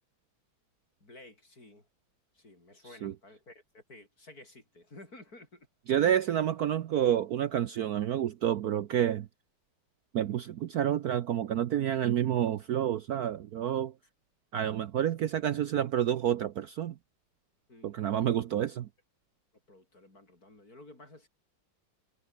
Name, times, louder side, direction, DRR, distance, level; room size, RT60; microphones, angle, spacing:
voice 1, 1.0-1.9 2.3-5.7 17.7-18.0 19.7-21.3, left 2 dB, 50° left, 7.5 m, -53 dB
voice 2, 5.9-9.3 10.1-13.9 14.5-16.9 17.8-18.9, right 10 dB, 60° right, 1.1 m, -29 dB
omnidirectional pair, 2.1 m